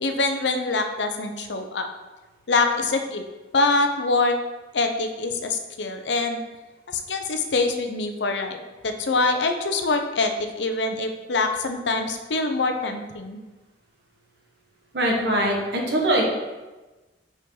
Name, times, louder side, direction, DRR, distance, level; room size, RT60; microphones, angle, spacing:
voice 1, 0.0-1.9 2.5-3.2 3.5-4.3 4.7-6.4 6.9-8.6 8.8-13.4, left 3 dB, 80° left, 6 dB, 0.7 m, -24 dB
voice 2, 14.9-16.2, right 1 dB, 65° right, 0 dB, 1.3 m, -22 dB
5.7 x 5.6 x 3.8 m, 1.2 s
head